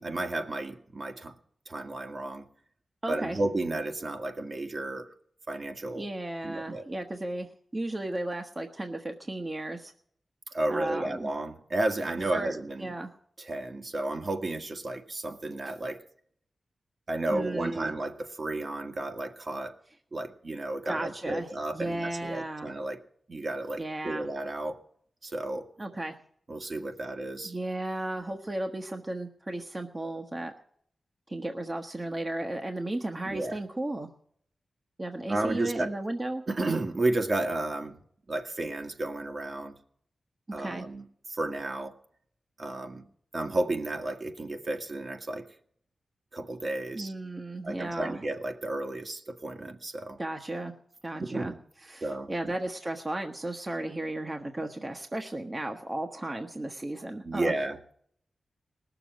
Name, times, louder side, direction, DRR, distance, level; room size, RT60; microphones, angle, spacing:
voice 1, 0.0-1.4 1.6-2.4 3.1-5.1 5.5-6.1 6.4-6.8 10.5-13.0 13.4-16.0 17.1-19.7 20.1-23.0 23.3-24.8 25.2-25.7 26.5-27.5 33.2-33.6 35.3-35.9 36.5-38.0 38.3-39.8 40.5-41.9 42.6-43.0 43.3-45.4 46.3-47.1 47.6-50.2 51.2-51.6 52.0-52.6 57.2-57.8, right 2 dB, 45° right, 5 dB, 1.7 m, -32 dB
voice 2, 3.0-3.4 5.9-7.5 7.7-9.9 10.7-11.3 12.3-13.1 17.3-17.9 20.8-21.5 21.7-22.7 23.8-24.3 25.8-26.2 27.4-30.5 31.3-34.1 35.0-36.4 40.5-40.9 46.9-48.2 50.2-50.7 51.0-51.5 51.8-57.5, right 1 dB, 25° right, 4 dB, 1.2 m, -34 dB
19.5 x 7.0 x 9.1 m, 0.64 s
wide cardioid pair, 85°, 0 cm